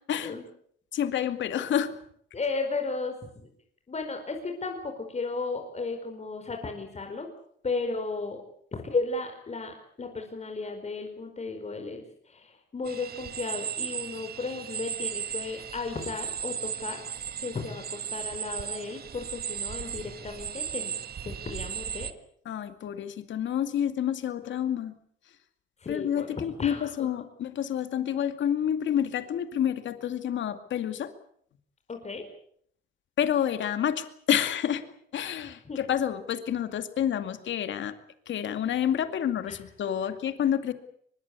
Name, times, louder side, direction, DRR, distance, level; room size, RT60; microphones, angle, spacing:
voice 1, 0.9-1.9 22.5-24.9 25.9-31.1 33.2-34.8 35.1-38.0 38.3-40.7, left 9 dB, 70° left, 10 dB, 2.3 m, -29 dB
voice 2, 2.3-3.3 3.9-7.3 7.6-8.4 8.7-17.0 17.4-20.9 21.2-22.1 25.8-26.9 31.9-32.2 35.6-35.8 39.5-39.6, left 3 dB, 35° left, 4 dB, 4.9 m, -34 dB
sound 1, 12.9-22.1, right 8 dB, 50° right, 1.7 m, -36 dB
23.5 x 21.5 x 8.3 m, 0.65 s
cardioid pair, 90°, 20 cm